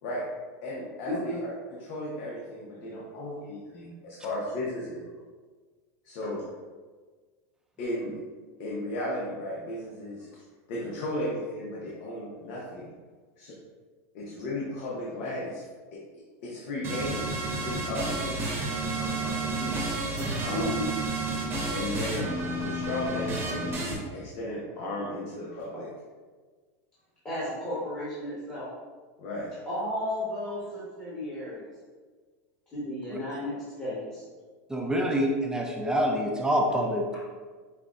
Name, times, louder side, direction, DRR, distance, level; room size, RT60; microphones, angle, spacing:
voice 1, 0.6-5.0 6.0-6.4 7.8-8.1 8.6-10.4 10.7-12.9 13.4-13.5 14.1-15.6 15.9-16.0 16.4-18.6 18.9-19.9 20.4-20.8 21.7-25.9 29.2-29.5, left 1 dB, 60° left, -5 dB, 0.8 m, -35 dB
sound 1, 16.8-23.9, right 2 dB, 30° right, 1.0 m, -31 dB
voice 2, 20.5-20.9 27.2-28.7 29.7-31.7 32.7-34.2, left 1 dB, 15° left, -11 dB, 1.3 m, -33 dB
voice 3, 34.7-37.2, equal, 10° right, 0 dB, 0.3 m, -26 dB
5.7 x 2.2 x 2.5 m, 1.4 s
supercardioid pair, 135°, 8 cm